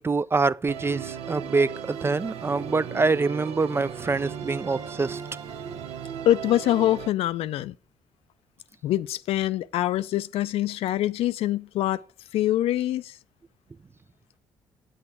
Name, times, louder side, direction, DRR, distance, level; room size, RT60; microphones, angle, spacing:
voice 1, 0.0-5.2, right 4 dB, 25° right, 0.3 m, -25 dB
Musical instrument, 0.7-7.1, right 7 dB, 75° right, 0.7 m, -36 dB
voice 2, 6.3-7.7 8.8-12.0 12.3-13.1, left 13 dB, 75° left, 0.4 m, -24 dB
8.7 x 7.8 x 4.6 m
supercardioid pair, 50°, 10 cm